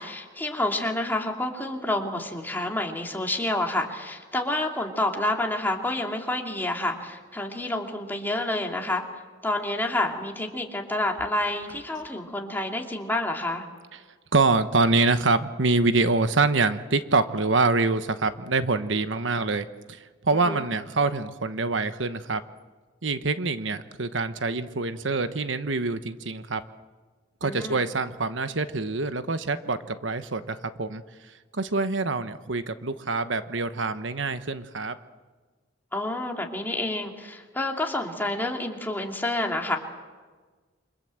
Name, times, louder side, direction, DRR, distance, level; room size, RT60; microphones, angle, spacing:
voice 1, 0.0-9.0 9.4-13.7 20.3-20.6 27.4-27.8 35.9-39.8, left 1 dB, 10° left, 1 dB, 2.6 m, -29 dB
voice 2, 14.3-22.4 23.0-26.6 27.4-35.0, right 3 dB, 90° right, 11 dB, 1.2 m, -25 dB
28.0 x 25.5 x 7.7 m, 1.4 s
head